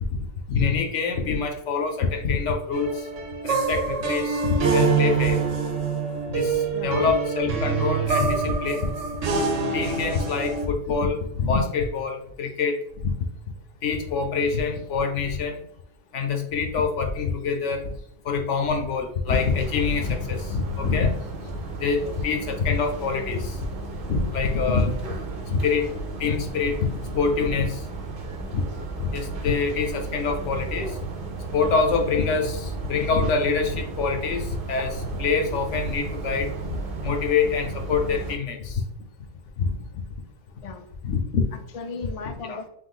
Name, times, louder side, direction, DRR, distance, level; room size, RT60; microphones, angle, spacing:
voice 1, 0.5-3.0 3.4-5.4 6.3-8.9 9.7-13.1 13.8-15.6 16.1-17.9 18.2-21.1 21.8-23.6 24.1-24.9 25.5-25.9 26.2-27.8 28.5-28.6 29.0-31.0 31.5-38.8 39.6-39.7 41.0-41.4 42.5-42.6, left 5 dB, 75° left, 5 dB, 1.0 m, -25 dB
sound 1, 2.7-10.7, right 4 dB, 85° right, 1.1 m, -25 dB
voice 2, 6.7-7.1 22.0-22.2 40.6-40.9 41.5-42.7, left 4 dB, 50° left, 6 dB, 0.4 m, -37 dB
sound 2, 19.3-38.4, right 4 dB, 55° right, 0.8 m, -34 dB
3.7 x 2.9 x 3.8 m, 0.71 s
omnidirectional pair, 1.2 m